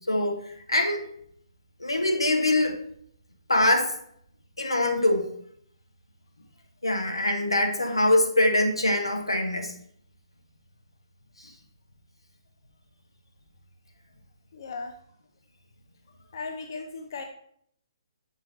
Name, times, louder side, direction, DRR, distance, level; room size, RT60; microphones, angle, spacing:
voice 1, 0.1-1.0 1.8-2.8 3.5-4.0 4.6-5.3 6.8-9.7 11.4-11.5, left 1 dB, 80° left, 4 dB, 1.0 m, -24 dB
voice 2, 14.5-14.9 16.3-17.2, left 4 dB, 50° left, 5 dB, 0.5 m, -36 dB
6.1 x 4.4 x 4.0 m, 0.67 s
figure-of-eight pair, 135°, 3 cm